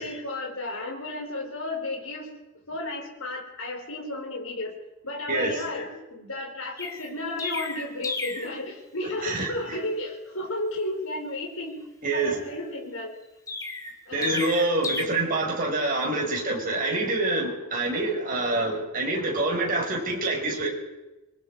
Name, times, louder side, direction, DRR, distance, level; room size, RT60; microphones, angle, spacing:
voice 1, 0.0-2.3 2.7-4.7 5.0-11.8 12.1-13.1 14.1-14.5 17.2-17.4, left 2 dB, 70° left, 0 dB, 4.5 m, -33 dB
Chirp tweet, 6.8-8.6 13.5-15.0, left 3 dB, 15° left, 1.7 m, -33 dB
voice 2, 9.2-9.8 12.0-12.4 14.1-20.7, right 2 dB, 40° right, -1 dB, 5.4 m, -26 dB
25.0 x 22.0 x 4.8 m, 1.0 s
head